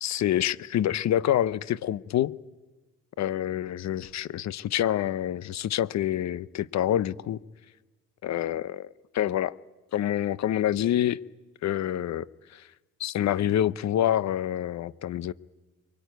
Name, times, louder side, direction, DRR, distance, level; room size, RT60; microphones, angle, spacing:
voice 1, 0.0-2.4 3.2-7.4 8.2-9.5 9.9-11.2 11.6-12.3 12.5-12.6 13.0-15.3, left 11 dB, 65° left, 0.7 m, -27 dB
23.5 x 23.0 x 9.2 m
cardioid pair, 90°, 30 cm